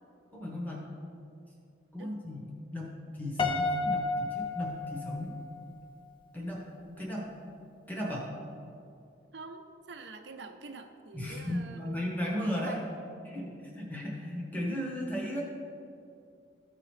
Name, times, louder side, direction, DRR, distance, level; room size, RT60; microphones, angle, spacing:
voice 1, 0.3-0.8 1.9-2.4 2.7-5.3 6.3-6.7 7.0-7.3 7.9-8.3 11.1-12.8 13.2-15.4, left 1 dB, 10° left, -3 dB, 1.1 m, -35 dB
Piano, 3.4-5.6, left 3 dB, 25° left, 0.4 m, -31 dB
voice 2, 9.3-12.0 12.6-12.9, right 3 dB, 65° right, 6 dB, 0.6 m, -46 dB
13.0 x 4.8 x 3.2 m, 2.5 s
head